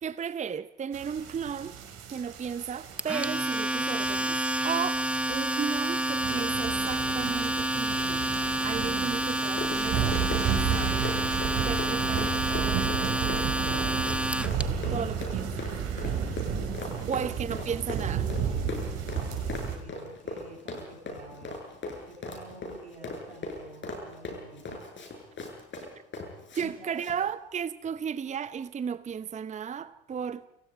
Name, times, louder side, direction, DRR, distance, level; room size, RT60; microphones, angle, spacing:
voice 1, 0.0-1.8 2.1-8.2 8.6-11.1 11.6-13.7 14.9-15.4 17.0-18.3 26.5-30.5, right 7 dB, 20° right, 0.8 m, -35 dB
sound 1, 0.9-19.8, right 7 dB, 50° right, 5.7 m, -33 dB
Domestic sounds home sounds, 3.0-14.6, right 1 dB, 5° right, 1.1 m, -29 dB
Run, 9.6-26.7 27.0-27.2, left 3 dB, 35° left, 7.9 m, -39 dB
voice 2, 14.8-15.2 16.8-17.3 19.0-21.6 22.1-24.8 26.6-26.9, right 2 dB, 80° right, 6.5 m, -49 dB
29.5 x 28.0 x 4.8 m
figure-of-eight pair, 55°, 32 cm